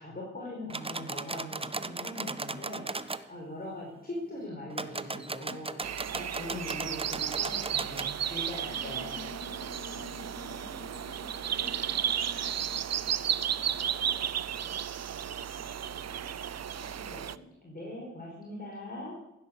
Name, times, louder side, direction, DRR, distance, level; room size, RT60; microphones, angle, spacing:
voice 1, 0.0-9.2 16.7-17.3 17.6-19.2, left 1 dB, 30° left, -3 dB, 4.6 m, -41 dB
sound 1, 0.7-3.2 4.7-8.1, right 3 dB, 20° right, 0.7 m, -37 dB
sound 2, 5.8-17.3, right 9 dB, 60° right, 0.5 m, -33 dB
sound 3, 8.7-17.5, left 3 dB, 60° left, 2.8 m, -50 dB
voice 2, 10.1-14.3, equal, ahead, 6 dB, 1.7 m, -58 dB
16.0 x 9.9 x 6.5 m, 0.93 s
wide cardioid pair, 75°, 30 cm